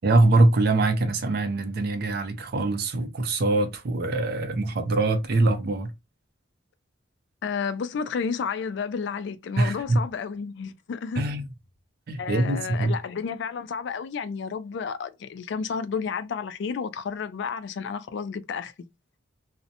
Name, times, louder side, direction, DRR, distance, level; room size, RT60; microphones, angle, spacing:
voice 1, 0.0-5.9 9.6-10.0 11.2-11.5 12.1-13.0, right 2 dB, 50° right, 0.4 m, -23 dB
voice 2, 7.4-11.2 12.2-18.7, left 6 dB, 60° left, 0.3 m, -31 dB
2.7 x 2.0 x 2.5 m
head